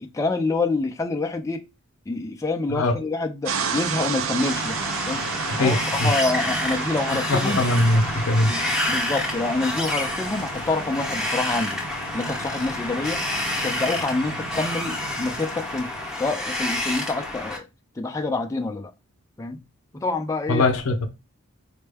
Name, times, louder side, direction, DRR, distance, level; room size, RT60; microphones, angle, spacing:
voice 1, 0.0-1.6 2.1-4.8 5.1-5.2 5.6-7.6 8.5-11.8 12.1-13.2 13.5-17.6 18.0-18.9 19.4-19.6 19.9-20.7, left 3 dB, 15° left, 0.4 m, -27 dB
sound 1, 3.4-16.3, right 6 dB, 65° right, 0.4 m, -33 dB
Wind, 4.4-17.6, left 1 dB, 5° right, 0.9 m, -29 dB
voice 2, 5.5-6.1 7.3-8.5 20.5-21.1, left 2 dB, 70° left, 0.6 m, -21 dB
4.3 x 2.1 x 3.3 m
head